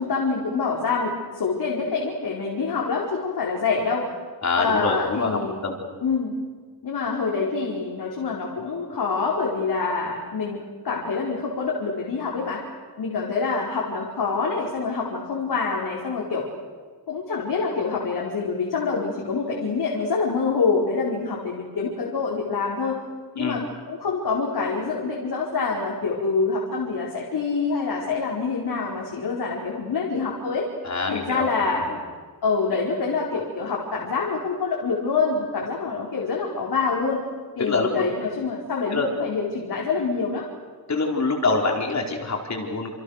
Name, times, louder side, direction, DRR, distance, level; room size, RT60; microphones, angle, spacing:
voice 1, 0.0-4.1 4.5-5.6 6.0-6.4 6.8-12.6 13.0-16.5 17.1-23.0 23.3-30.6 31.1-31.9 32.4-37.2 37.6-40.4, left 4 dB, 65° left, -3 dB, 4.9 m, -26 dB
voice 2, 4.4-5.8 23.4-23.6 30.8-31.5 31.8-32.0 37.6-38.0 38.9-39.1 40.9-42.9, left 3 dB, 40° left, 2 dB, 4.6 m, -25 dB
28.5 x 28.5 x 6.7 m, 1.5 s
wide cardioid pair, 160°, 41 cm